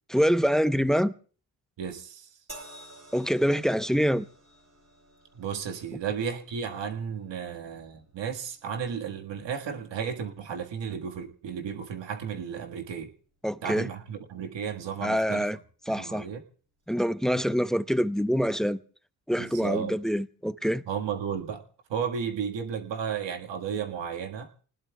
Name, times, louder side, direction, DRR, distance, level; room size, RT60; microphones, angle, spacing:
voice 1, 0.1-1.1 3.1-4.3 13.4-13.9 15.0-15.6 15.9-16.3 16.9-18.8 19.3-20.8, equal, ahead, 0.8 m, -25 dB
voice 2, 1.8-2.3 5.3-13.1 13.6-15.5 15.9-16.4 17.3-17.4 19.4-19.9 20.9-21.6 21.9-24.5, right 7 dB, 70° right, 1.7 m, -33 dB
sound 1, 2.5-15.8 16.8-17.0, right 1 dB, 35° right, 4.0 m, -55 dB
29.5 x 19.5 x 2.3 m
supercardioid pair, 50°, 44 cm